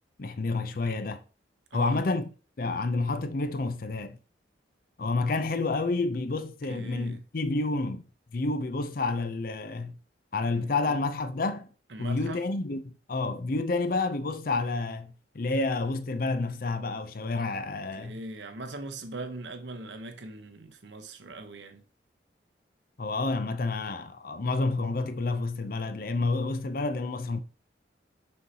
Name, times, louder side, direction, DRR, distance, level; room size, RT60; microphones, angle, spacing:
voice 1, 0.2-1.2 1.7-2.3 2.6-4.2 5.0-8.0 8.3-10.0 10.3-11.7 12.0-18.2 23.0-27.4, left 3 dB, 50° left, 0.5 m, -29 dB
voice 2, 6.7-7.2 10.5-10.6 10.8-11.0 11.9-12.4 18.0-21.8, right 2 dB, 75° right, 0.9 m, -40 dB
6.5 x 5.5 x 2.8 m
head